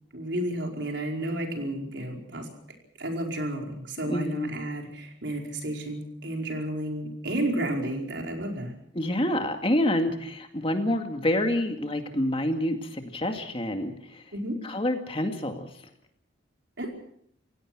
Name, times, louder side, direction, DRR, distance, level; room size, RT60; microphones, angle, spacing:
voice 1, 0.1-2.5 3.0-8.8 14.3-14.6 16.8-16.9, right 1 dB, 70° right, 2 dB, 4.9 m, -32 dB
voice 2, 4.1-4.5 9.0-14.2 14.6-15.7, left 1 dB, 30° left, 5 dB, 2.2 m, -27 dB
28.5 x 17.0 x 6.2 m, 0.67 s
head